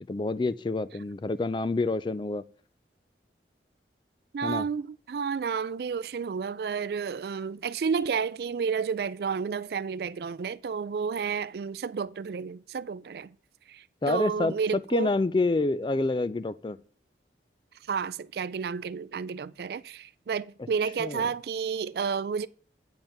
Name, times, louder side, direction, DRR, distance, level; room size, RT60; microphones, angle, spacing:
voice 1, 0.1-2.4 4.4-4.7 14.0-16.8 21.0-21.2, left 3 dB, 25° left, 0.3 m, -27 dB
voice 2, 4.3-13.3 13.7-15.2 17.9-22.5, right 6 dB, 60° right, 0.3 m, -31 dB
8.8 x 5.5 x 5.9 m
head